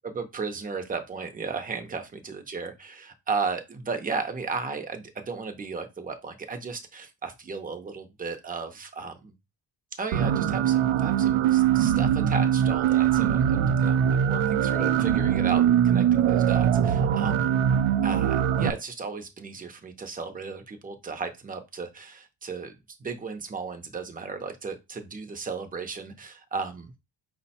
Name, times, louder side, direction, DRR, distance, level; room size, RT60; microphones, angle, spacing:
voice 1, 0.1-9.3 10.0-17.5 18.0-22.7 23.0-26.9, right 4 dB, 20° right, 6 dB, 0.5 m, -35 dB
sound 1, 10.1-18.7, right 9 dB, 85° right, 0.6 m, -22 dB
5.0 x 2.1 x 4.1 m, 0.24 s
wide cardioid pair, 150°, 48 cm